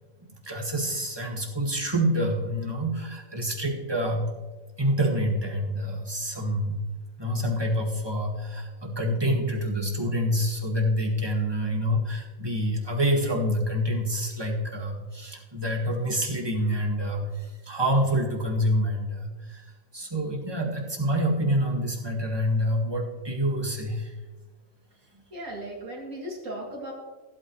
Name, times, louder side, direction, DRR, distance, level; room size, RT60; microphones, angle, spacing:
voice 1, 0.4-4.3 4.8-6.8 7.2-19.6 19.9-24.1, equal, 20° right, 0 dB, 1.8 m, -27 dB
voice 2, 25.3-26.9, right 1 dB, 70° right, -2 dB, 2.8 m, -36 dB
15.5 x 8.6 x 3.2 m, 1.3 s
omnidirectional pair, 1.4 m